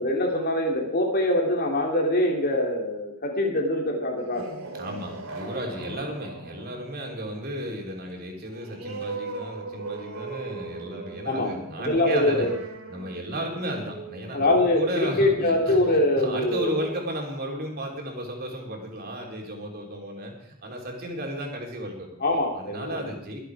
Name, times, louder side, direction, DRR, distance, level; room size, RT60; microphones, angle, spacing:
voice 1, 0.0-4.5 11.2-11.6 11.8-12.5 14.3-16.9 22.2-23.0, left 1 dB, 45° left, 1 dB, 3.1 m, -23 dB
sound 1, 4.0-15.3, right 3 dB, 80° right, 2.5 m, -40 dB
voice 2, 4.8-12.5 12.9-22.1 22.5-23.4, right 1 dB, 45° right, 1 dB, 3.5 m, -34 dB
23.5 x 8.0 x 4.9 m, 0.73 s
head